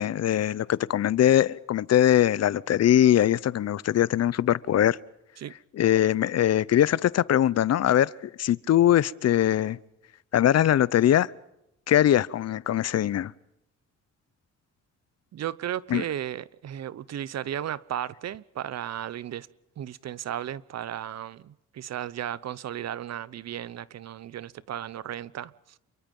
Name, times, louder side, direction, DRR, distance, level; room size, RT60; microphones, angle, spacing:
voice 1, 0.0-5.0 5.8-8.1 8.4-9.8 10.3-11.3 11.9-13.3 15.9-16.0, left 11 dB, 55° left, 0.8 m, -21 dB
voice 2, 15.3-19.5 19.8-25.8, right 11 dB, 60° right, 0.9 m, -35 dB
28.5 x 23.0 x 5.5 m
cardioid pair, 90°, 30 cm